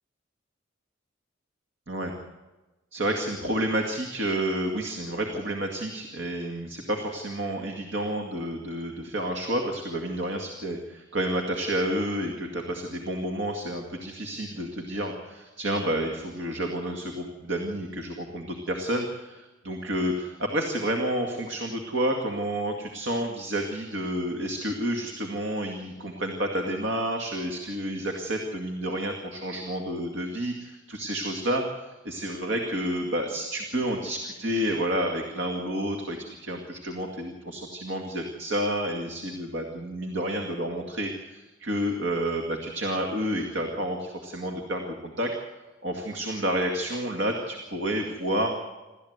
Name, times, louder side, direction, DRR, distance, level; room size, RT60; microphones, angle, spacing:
voice 1, 2.9-45.3 45.8-48.5, right 1 dB, 65° right, 3 dB, 2.2 m, -30 dB
28.0 x 13.5 x 8.1 m, 1.1 s
head